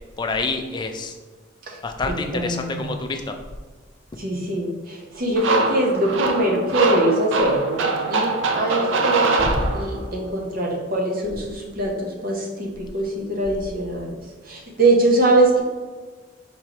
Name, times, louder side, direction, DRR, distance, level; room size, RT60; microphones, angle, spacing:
voice 1, 0.2-1.1 1.8-3.3 9.4-9.6, left 3 dB, 25° left, 5 dB, 0.4 m, -27 dB
voice 2, 2.1-3.0 4.2-9.5 9.7-14.1 14.4-15.6, right 2 dB, 50° right, -1 dB, 0.9 m, -23 dB
sound 1, 5.4-10.2, right 3 dB, 75° right, 0.5 m, -23 dB
4.5 x 3.8 x 2.9 m, 1.3 s
head